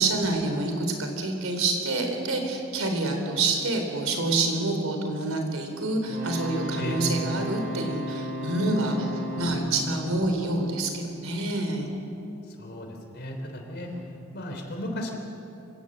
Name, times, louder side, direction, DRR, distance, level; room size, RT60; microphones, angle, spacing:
voice 1, 0.0-11.9, right 2 dB, 90° right, 4 dB, 3.9 m, -27 dB
sound 1, 6.0-11.1 13.8-14.0, equal, 40° right, 6.7 m, -35 dB
voice 2, 12.6-13.9 14.3-15.1, left 1 dB, 55° left, 3 dB, 3.5 m, -35 dB
25.5 x 17.0 x 7.6 m, 2.8 s
head